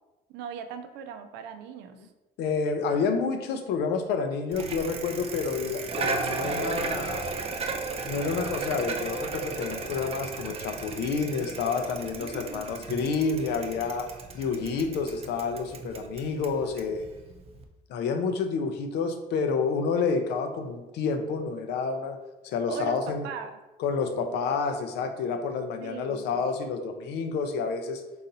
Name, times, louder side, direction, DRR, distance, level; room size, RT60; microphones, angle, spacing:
voice 1, 0.3-2.1 12.2-12.9 22.7-23.0 23.2-23.6 25.8-26.2, right 8 dB, 90° right, 7 dB, 0.5 m, -39 dB
voice 2, 2.4-7.3 8.0-17.0 17.9-22.2 22.4-23.3 23.8-28.0, left 5 dB, 80° left, 7 dB, 0.6 m, -29 dB
Bicycle, 4.5-17.6, right 4 dB, 35° right, 0.5 m, -35 dB
3.9 x 2.8 x 3.9 m, 1.1 s
cardioid pair, 110°, 17 cm